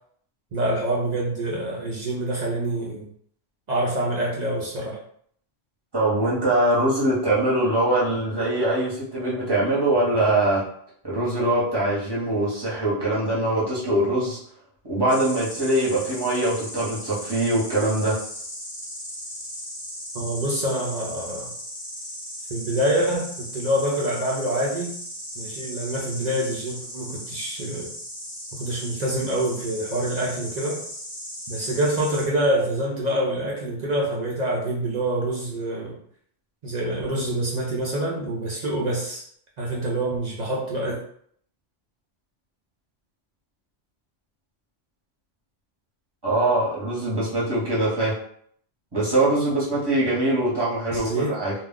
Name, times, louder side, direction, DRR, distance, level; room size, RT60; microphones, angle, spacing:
voice 1, 0.5-3.1 3.7-5.0 20.1-21.5 22.5-24.9 25.4-27.9 28.5-30.8 31.5-36.0 36.6-39.2 39.6-41.0 50.9-51.4, right 1 dB, 50° right, -4 dB, 0.5 m, -26 dB
voice 2, 5.9-10.6 11.0-14.4 14.8-18.2 46.2-48.1 48.9-51.5, right 1 dB, 20° right, -7 dB, 0.9 m, -23 dB
Insect, 15.1-32.3, equal, 10° left, 0.9 m, -37 dB
2.3 x 2.3 x 3.5 m, 0.64 s
omnidirectional pair, 1.2 m